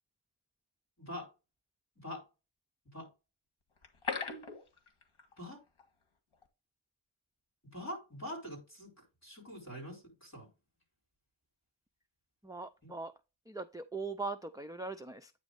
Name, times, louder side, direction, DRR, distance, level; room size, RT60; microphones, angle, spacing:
voice 1, 1.0-1.3 2.0-2.2 2.9-3.1 5.4-5.6 7.7-10.5 12.8-12.9, equal, 30° left, 4.0 m, -44 dB
sound 1, 3.8-5.5 5.8-5.9 6.3-6.5, left 5 dB, 70° left, 1.7 m, -39 dB
voice 2, 12.4-13.1 13.5-15.3, right 3 dB, 10° right, 0.4 m, -40 dB
9.1 x 3.0 x 5.1 m
wide cardioid pair, 100°, 50 cm